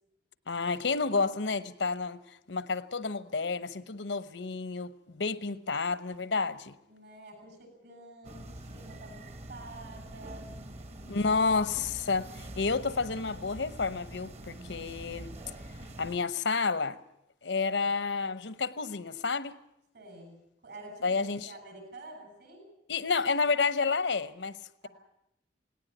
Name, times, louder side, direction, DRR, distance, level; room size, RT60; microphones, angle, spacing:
voice 1, 0.5-2.2 2.5-6.8 11.0-15.3 16.0-17.0 17.4-19.5 21.0-21.5 22.9-24.6, left 4 dB, 80° left, 0.9 m, -30 dB
voice 2, 6.9-10.5 11.1-11.4 17.6-17.9 19.9-22.7 24.8-24.9, right 2 dB, 65° right, 7.6 m, -49 dB
sound 1, 8.2-16.2, right 1 dB, 35° right, 1.1 m, -45 dB
18.5 x 18.5 x 9.0 m
head